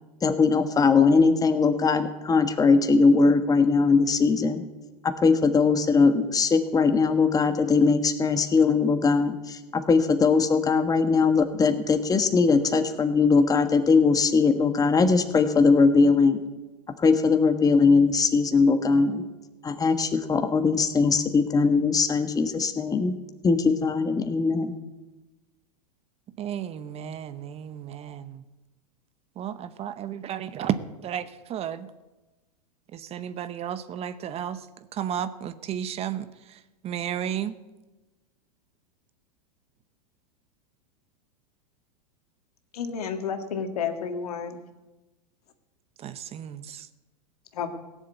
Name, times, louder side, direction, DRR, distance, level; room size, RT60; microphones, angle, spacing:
voice 1, 0.2-4.6 5.0-16.4 17.0-19.2 19.6-23.2 23.4-24.8, left 4 dB, 20° left, 8 dB, 1.4 m, -21 dB
voice 2, 26.4-28.4 29.4-30.8 31.0-31.9 32.9-34.6 34.9-37.6 46.0-46.9, right 10 dB, 30° right, 13 dB, 0.9 m, -33 dB
voice 3, 42.7-44.6 47.5-47.7, left 6 dB, 75° left, 6 dB, 1.9 m, -31 dB
16.5 x 7.4 x 8.2 m, 1.1 s
hypercardioid pair, 100°, 20 cm